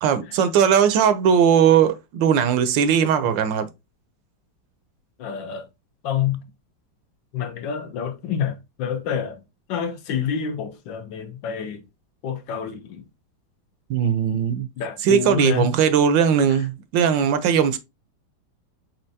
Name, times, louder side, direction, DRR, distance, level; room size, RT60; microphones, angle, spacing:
voice 1, 0.0-3.7 13.9-14.7 15.1-17.8, right 8 dB, 75° right, 1.2 m, -19 dB
voice 2, 5.2-5.7 6.0-6.4 7.3-9.4 9.7-11.8 12.2-13.0 14.8-15.7 16.5-16.6, left 8 dB, 75° left, 1.4 m, -28 dB
4.4 x 3.9 x 2.7 m
omnidirectional pair, 2.1 m